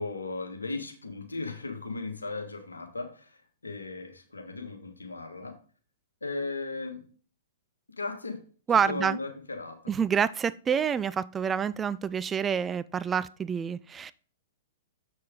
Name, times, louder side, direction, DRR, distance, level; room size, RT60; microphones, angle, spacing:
voice 1, 0.0-5.5 6.2-7.0 8.0-8.4 8.9-9.9, left 3 dB, 90° left, 4 dB, 1.7 m, -36 dB
voice 2, 8.7-9.2 9.9-14.1, right 7 dB, 20° right, 17 dB, 0.3 m, -27 dB
7.4 x 6.3 x 3.8 m, 0.41 s
figure-of-eight pair, 110°, 0 cm